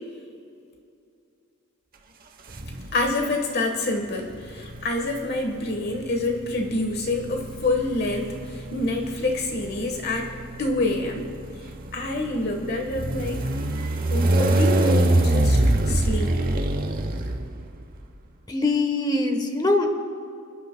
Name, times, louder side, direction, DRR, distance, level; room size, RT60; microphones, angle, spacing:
sound 1, 2.5-3.2 4.3-18.0, right 1 dB, 40° right, 1.0 m, -25 dB
voice 1, 2.9-11.3 11.9-13.4 14.1-16.3, left 2 dB, 45° left, 3 dB, 1.3 m, -27 dB
voice 2, 18.5-19.9, left 2 dB, 20° left, 5 dB, 1.1 m, -22 dB
29.5 x 11.0 x 2.2 m, 2.5 s
head